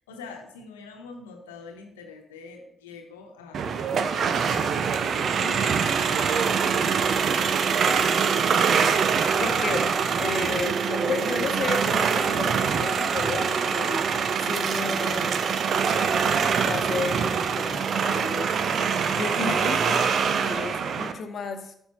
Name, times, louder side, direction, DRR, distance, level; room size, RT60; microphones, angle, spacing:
voice 1, 0.0-3.8 5.1-6.0, left 4 dB, 90° left, 3 dB, 1.0 m, -44 dB
sound 1, 3.5-21.1, right 6 dB, 60° right, 0.6 m, -24 dB
voice 2, 5.1-5.6 7.7-9.0 9.4-9.9 10.2-14.1 14.4-15.4 16.5-18.6 19.1-21.7, left 4 dB, 55° left, 8 dB, 0.9 m, -33 dB
12.5 x 5.4 x 3.0 m, 0.75 s
hypercardioid pair, 45°, 0 cm